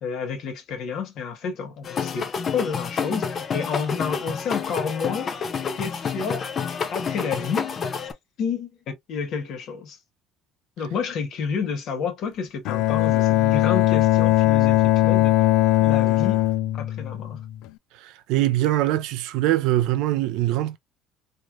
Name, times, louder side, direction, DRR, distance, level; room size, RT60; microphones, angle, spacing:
voice 1, 0.0-5.4 5.7-6.5 6.9-7.7 8.0-8.1 8.4-8.7 9.1-10.0 10.8-15.4 15.8-16.4 16.8-17.4, left 6 dB, 60° left, 1.4 m, -30 dB
sound 1, 1.8-8.1, left 6 dB, 40° left, 0.6 m, -29 dB
Bowed string instrument, 12.6-17.7, left 15 dB, 75° left, 0.3 m, -20 dB
voice 2, 17.9-20.8, right 14 dB, 75° right, 0.5 m, -23 dB
3.2 x 3.1 x 2.4 m
supercardioid pair, 105°, 0 cm